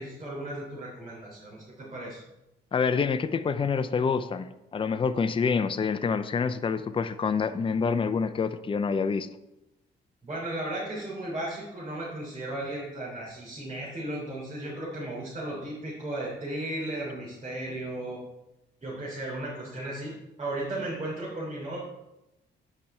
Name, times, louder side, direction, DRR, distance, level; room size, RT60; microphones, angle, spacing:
voice 1, 0.0-2.2 10.2-18.2 18.8-20.1 20.4-21.8, right 1 dB, 30° right, -6 dB, 3.4 m, -35 dB
voice 2, 2.7-4.5 4.7-9.3, left 5 dB, 25° left, 11 dB, 0.5 m, -27 dB
9.7 x 5.5 x 4.4 m, 0.92 s
cardioid pair, 90°, 20 cm